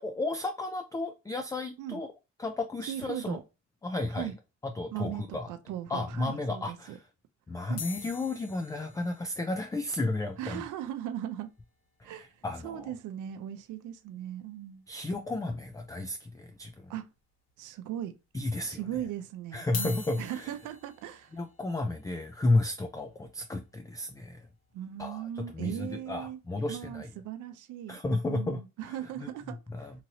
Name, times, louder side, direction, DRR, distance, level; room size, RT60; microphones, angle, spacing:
voice 1, 0.0-2.1 2.4-3.4 3.8-4.3 4.6-5.5 5.9-7.0 7.5-10.6 12.0-12.9 14.9-16.9 18.3-18.8 19.5-20.5 21.3-24.5 25.0-27.1 27.9-28.6 28.9-29.3 29.7-29.9, left 2 dB, 10° left, 0.3 m, -33 dB
voice 2, 2.9-3.4 4.1-4.3 4.9-7.0 7.7-7.8 10.4-11.5 12.0-12.3 12.6-14.8 16.9-17.0 17.6-18.1 18.6-21.3 24.7-26.4 26.7-28.0 28.3-29.9, right 11 dB, 80° right, 0.5 m, -38 dB
sound 1, 7.8-12.1 12.4-12.5 12.7-12.9 13.2-13.4 14.7-14.8 15.5-16.0 16.5-16.6 17.5-17.6 19.6-25.7 26.2-26.5, left 5 dB, 55° left, 1.2 m, -46 dB
2.9 x 2.6 x 2.8 m
cardioid pair, 90°, 30 cm